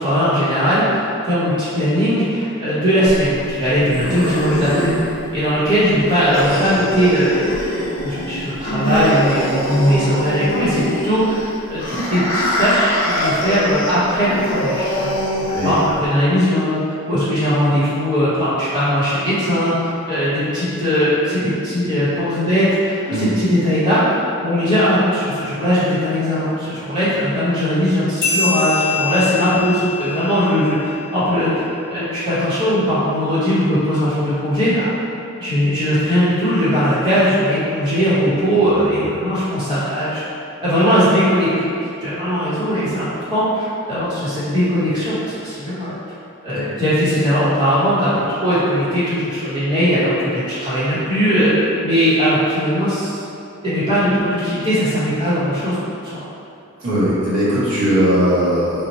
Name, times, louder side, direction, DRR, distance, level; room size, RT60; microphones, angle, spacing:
voice 1, 0.0-4.9 5.3-7.5 8.0-15.1 15.5-16.8 17.1-19.8 20.1-31.5 31.9-34.9 35.4-40.2 40.6-41.7 42.0-46.0 46.4-51.5 51.8-53.2 53.6-56.2, equal, 20° right, -12 dB, 0.9 m, -19 dB
sound 1, 3.1-16.1, left 1 dB, 60° left, 0.6 m, -23 dB
sound 2, 28.2-31.3, left 4 dB, 10° left, 1.0 m, -24 dB
voice 2, 56.8-58.9, equal, 80° right, -10 dB, 1.1 m, -18 dB
2.9 x 2.1 x 4.1 m, 2.6 s
head